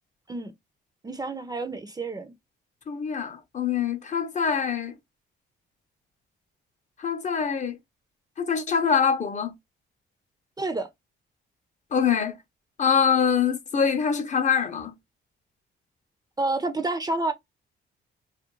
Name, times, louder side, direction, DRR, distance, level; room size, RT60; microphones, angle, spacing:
voice 1, 1.0-2.3 10.6-10.9 16.4-17.3, right 2 dB, 20° right, 0.5 m, -29 dB
voice 2, 2.9-4.9 7.0-7.8 8.4-9.5 11.9-12.4 12.8-14.9, left 7 dB, 35° left, 0.5 m, -24 dB
2.4 x 2.1 x 2.9 m
cardioid pair, 90°, 20 cm